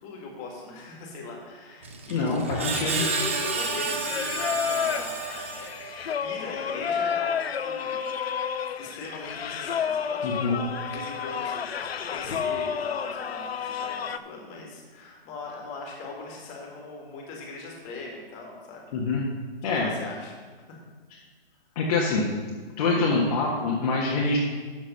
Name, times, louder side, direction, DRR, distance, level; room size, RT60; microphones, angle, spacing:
voice 1, 0.0-5.7 6.2-7.4 7.6-8.0 8.8-11.7 12.1-18.9 19.6-20.4, left 3 dB, 25° left, -1 dB, 2.1 m, -39 dB
Screech, 1.8-6.1, right 3 dB, 15° right, 0.3 m, -31 dB
voice 2, 2.1-3.0 10.2-10.5 18.9-19.2 19.6-19.9 21.7-22.2 22.8-24.4, left 3 dB, 40° left, -4 dB, 1.6 m, -25 dB
Singing, 4.0-14.2, left 7 dB, 85° left, 0.6 m, -30 dB
12.0 x 4.0 x 6.5 m, 1.5 s
hypercardioid pair, 140°, 30 cm